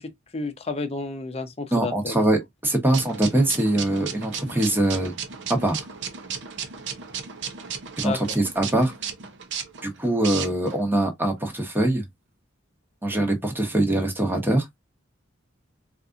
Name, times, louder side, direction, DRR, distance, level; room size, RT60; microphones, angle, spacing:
voice 1, 0.0-2.2 8.0-8.4, left 3 dB, 30° left, 0.7 m, -31 dB
voice 2, 1.7-5.1 5.5-5.8 8.0-8.9 9.8-12.0 13.0-14.6, right 1 dB, 10° right, 1.0 m, -23 dB
sound 1, 2.9-10.8, right 7 dB, 65° right, 0.7 m, -35 dB
4.1 x 2.5 x 2.4 m
head